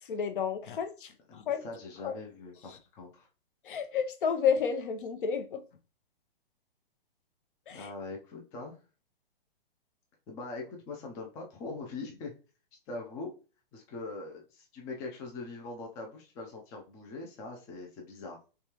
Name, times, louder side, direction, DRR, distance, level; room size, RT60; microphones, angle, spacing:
voice 1, 0.1-1.6 2.0-2.2 3.7-5.6 7.7-7.9, left 7 dB, 60° left, 0.7 m, -31 dB
voice 2, 1.3-3.3 7.7-8.8 10.3-12.3 12.9-13.3 13.7-18.4, left 3 dB, 10° left, 0.3 m, -42 dB
3.3 x 3.2 x 2.9 m
hypercardioid pair, 125°, 30 cm